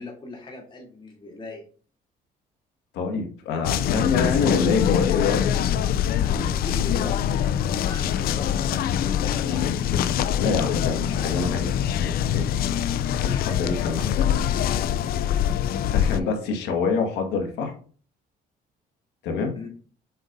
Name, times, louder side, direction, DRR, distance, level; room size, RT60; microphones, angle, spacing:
voice 1, 0.0-1.6 6.3-10.0 13.8-14.0 15.7-16.4 19.5-19.7, left 2 dB, 30° left, -1 dB, 3.0 m, -39 dB
voice 2, 2.9-5.5 10.4-12.5 13.2-14.7 15.9-17.7 19.2-19.5, left 4 dB, 90° left, 3 dB, 1.7 m, -26 dB
sound 1, 3.6-16.2, left 9 dB, 60° left, 0.4 m, -24 dB
7.6 x 5.1 x 2.6 m, 0.41 s
cardioid pair, 110°, 17 cm